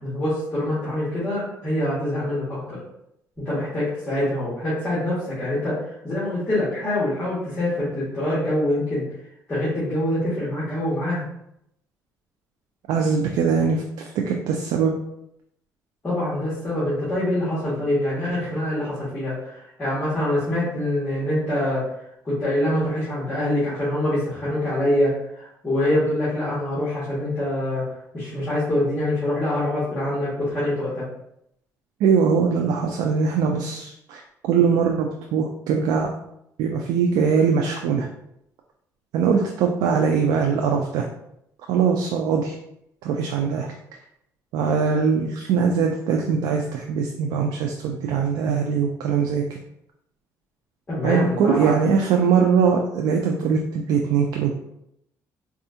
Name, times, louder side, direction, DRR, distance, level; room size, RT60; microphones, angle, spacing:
voice 1, 0.0-2.8 3.4-9.0 9.5-11.2 16.0-21.8 22.2-27.8 28.1-31.0 50.9-51.7, left 1 dB, 25° left, -11 dB, 1.5 m, -25 dB
voice 2, 12.9-14.9 32.0-36.1 36.6-38.1 39.1-41.1 41.7-42.5 43.0-43.7 44.5-49.6 51.0-54.5, right 6 dB, 85° right, 1 dB, 0.4 m, -21 dB
4.1 x 2.3 x 2.7 m, 0.78 s
cardioid pair, 120°, 7 cm